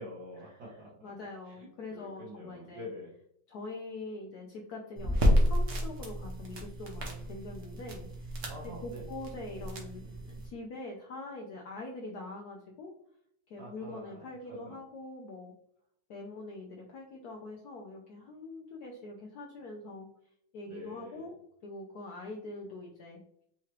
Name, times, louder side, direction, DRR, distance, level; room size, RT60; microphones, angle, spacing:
voice 1, 0.0-1.1 1.5-3.1 8.5-9.1 13.6-14.8 20.7-21.3, left 1 dB, 80° right, -7 dB, 1.9 m, -46 dB
voice 2, 1.0-2.9 3.5-8.4 8.8-12.9 13.5-15.5 16.1-20.1 20.5-21.3 21.6-23.2, left 2 dB, 65° left, 0 dB, 1.0 m, -44 dB
sound 1, 5.0-10.5, equal, 50° right, 1.1 m, -31 dB
4.7 x 3.1 x 2.9 m, 0.69 s
omnidirectional pair, 2.0 m